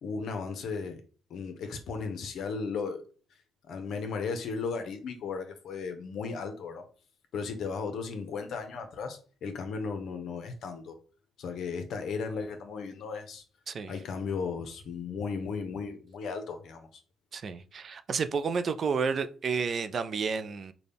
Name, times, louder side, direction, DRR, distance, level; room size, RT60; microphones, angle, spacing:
voice 1, 0.0-1.0 1.3-3.0 3.7-6.8 7.3-11.0 11.4-13.4 13.9-16.9, left 5 dB, 70° left, 0.8 m, -35 dB
voice 2, 17.3-20.7, right 5 dB, 50° right, 0.3 m, -31 dB
4.0 x 2.2 x 3.4 m
cardioid pair, 90°, 0 cm